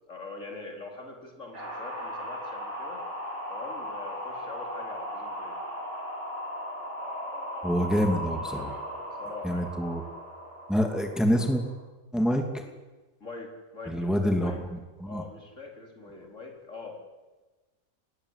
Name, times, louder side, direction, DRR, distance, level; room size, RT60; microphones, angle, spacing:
voice 1, 0.1-3.1 3.5-5.6 9.1-9.8 13.2-14.7 15.1-17.0, left 3 dB, 55° left, 1 dB, 4.8 m, -43 dB
sound 1, 1.5-11.8, equal, 50° right, 8.1 m, -37 dB
voice 2, 7.6-8.8 9.4-10.0 10.7-11.6 12.1-12.6 13.9-14.5 15.0-15.2, equal, ahead, 4 dB, 2.6 m, -26 dB
29.0 x 20.5 x 8.4 m, 1.2 s
omnidirectional pair, 1.5 m